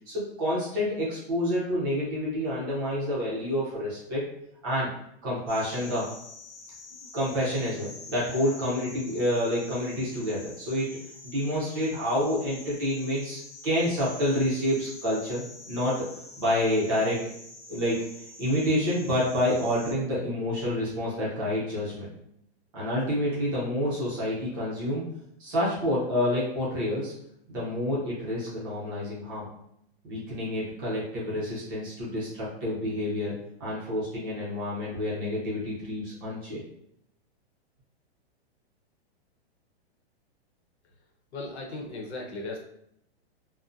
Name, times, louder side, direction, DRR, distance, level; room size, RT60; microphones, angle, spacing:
voice 1, 0.1-4.3 4.6-4.9 5.2-6.1 7.1-16.1 16.4-17.3 17.7-18.0 18.4-22.1 22.7-25.1 25.4-27.1 27.5-29.5 30.0-33.3 33.6-36.6, left 1 dB, 20° right, -7 dB, 0.6 m, -28 dB
sound 1, 5.5-19.9, left 3 dB, 45° left, 0.9 m, -46 dB
voice 2, 41.3-42.6, left 2 dB, 85° left, -1 dB, 0.8 m, -36 dB
2.5 x 2.1 x 2.4 m, 0.75 s
hypercardioid pair, 170°, 32 cm